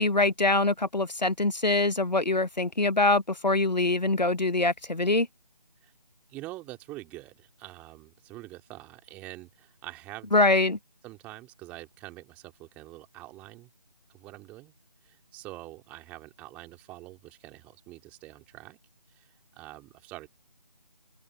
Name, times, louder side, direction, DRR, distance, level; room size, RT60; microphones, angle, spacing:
voice 1, 0.0-5.3 10.3-10.8, left 2 dB, 90° left, 1.0 m, -24 dB
voice 2, 6.3-10.4 11.0-13.7 14.1-14.7 15.0-18.8 19.1-20.3, right 18 dB, 5° right, 3.1 m, -45 dB
open air
figure-of-eight pair, 160°, 21 cm